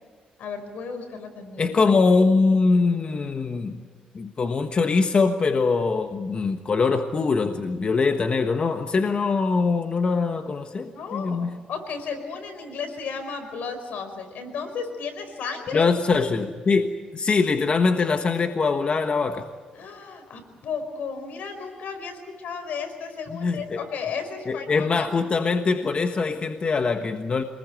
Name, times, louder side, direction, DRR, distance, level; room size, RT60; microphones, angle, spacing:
voice 1, 0.4-1.7 10.8-15.9 19.7-25.1, left 5 dB, 80° left, 7 dB, 4.8 m, -34 dB
voice 2, 1.6-3.8 4.1-11.6 15.7-19.5 23.3-23.8 24.5-27.4, left 4 dB, 40° left, 6 dB, 1.3 m, -23 dB
26.5 x 20.5 x 9.2 m, 1.4 s
cardioid pair, 100°, 3 cm